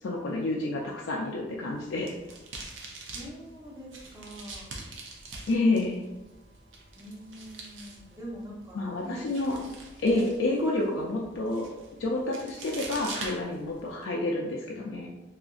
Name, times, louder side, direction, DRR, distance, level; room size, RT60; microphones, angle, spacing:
voice 1, 0.0-2.1 5.5-6.0 8.8-9.6 10.0-11.7 12.0-15.1, left 2 dB, 80° left, -3 dB, 0.4 m, -29 dB
sound 1, 1.7-14.1, right 3 dB, 75° right, 0.5 m, -45 dB
voice 2, 3.1-4.7 6.9-9.2 9.5-9.7, right 1 dB, 15° right, -4 dB, 0.7 m, -44 dB
2.8 x 2.4 x 2.4 m, 1.0 s
head